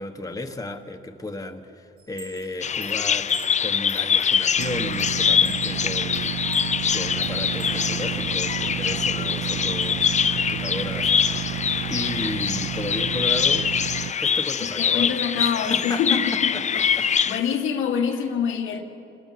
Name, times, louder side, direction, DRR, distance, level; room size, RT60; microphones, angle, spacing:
voice 1, 0.0-6.6 6.9-11.6 11.9-13.7 14.2-17.6 18.1-18.2, left 2 dB, 15° left, 1.5 m, -34 dB
Chime, 2.0-7.8 8.3-9.9, right 6 dB, 50° right, 2.1 m, -45 dB
Bird vocalization bird call bird song, 2.6-17.4, left 7 dB, 35° left, 0.6 m, -24 dB
sound 1, 4.6-14.1, right 12 dB, 80° right, 0.6 m, -31 dB
voice 2, 14.6-18.8, left 7 dB, 90° left, 2.0 m, -26 dB
27.0 x 20.5 x 6.0 m
cardioid pair, 90°, 20 cm